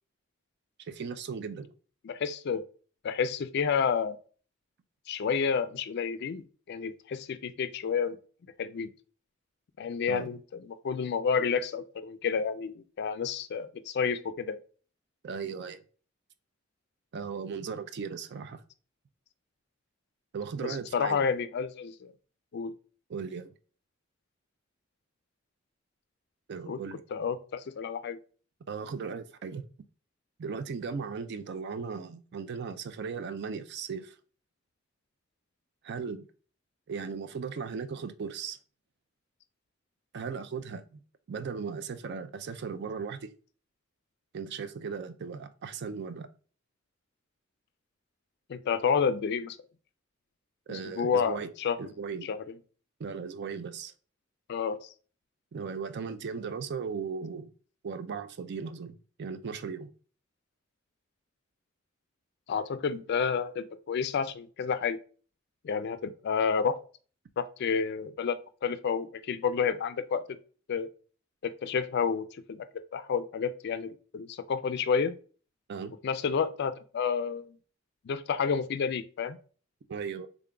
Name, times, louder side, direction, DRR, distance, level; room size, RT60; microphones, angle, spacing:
voice 1, 0.8-1.7 10.1-10.3 15.2-15.8 17.1-18.6 20.3-21.2 23.1-23.5 26.5-27.0 28.7-29.7 30.4-34.2 35.8-36.3 36.9-38.6 40.1-41.0 41.3-43.3 44.3-46.3 50.7-51.5 51.8-52.3 53.0-53.9 55.5-57.5 57.8-59.9 75.7-75.9 79.9-80.3, right 5 dB, 60° right, 0.4 m, -37 dB
voice 2, 2.0-2.6 3.0-4.2 5.1-8.2 8.6-8.9 9.8-14.6 20.6-22.1 22.5-22.7 26.7-26.8 27.1-28.2 48.5-49.6 50.7-51.8 52.2-52.4 54.5-54.9 62.5-65.0 65.6-66.8 67.4-70.2 70.7-70.9 71.4-72.7 72.9-75.2 76.0-77.6 78.0-79.4, left 6 dB, 55° left, 0.3 m, -30 dB
3.7 x 3.5 x 2.2 m
head